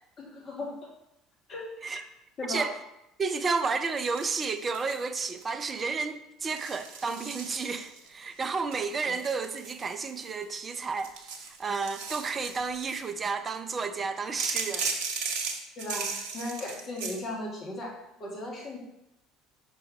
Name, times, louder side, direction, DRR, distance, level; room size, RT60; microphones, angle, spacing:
voice 1, 0.2-0.8 1.5-1.7 2.4-2.7 15.8-17.9 18.2-18.8, left 1 dB, 40° left, -3 dB, 1.8 m, -36 dB
voice 2, 2.5-2.8 3.2-14.9, right 4 dB, 30° right, 10 dB, 0.5 m, -32 dB
sound 1, 4.0-5.0 5.4-5.8 6.4-8.1 8.7-10.4 10.9-13.1 14.4-17.2, right 5 dB, 60° right, 0.7 m, -36 dB
5.7 x 5.2 x 3.2 m, 0.85 s
figure-of-eight pair, 60°, 0 cm